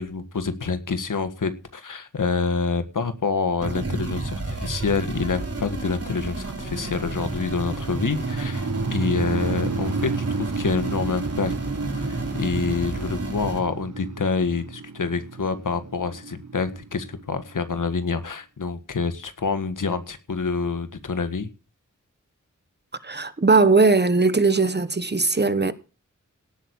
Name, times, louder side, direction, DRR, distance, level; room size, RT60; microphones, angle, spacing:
voice 1, 0.0-11.5 12.0-21.5, left 4 dB, 90° left, 1.8 m, -27 dB
sound 1, 3.6-13.6, right 2 dB, 50° right, 4.0 m, -31 dB
sound 2, 7.7-17.7, right 5 dB, 75° right, 1.0 m, -33 dB
voice 2, 23.0-25.7, right 3 dB, 35° right, 1.2 m, -19 dB
17.5 x 8.3 x 4.8 m
wide cardioid pair, 90°, 31 cm